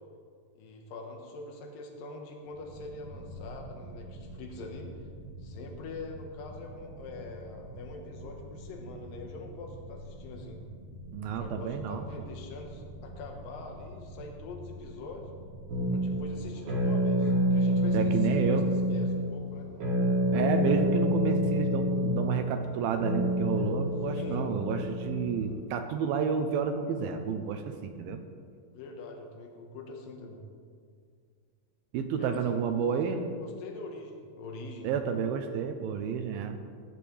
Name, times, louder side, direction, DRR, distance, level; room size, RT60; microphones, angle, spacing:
voice 1, 0.5-4.9 5.4-10.6 11.3-15.3 15.9-18.6 18.9-19.7 24.2-24.5 28.7-30.5 32.2-34.9, left 3 dB, 65° left, 1 dB, 2.8 m, -44 dB
sound 1, 2.4-16.4, equal, 15° right, 1.3 m, -46 dB
voice 2, 11.1-12.1 17.9-18.6 20.3-28.2 31.9-33.2 34.8-36.6, right 7 dB, 80° right, 6 dB, 2.4 m, -30 dB
sound 2, 15.7-25.6, equal, 65° right, 3.1 m, -28 dB
16.5 x 10.5 x 3.4 m, 2.1 s
omnidirectional pair, 4.6 m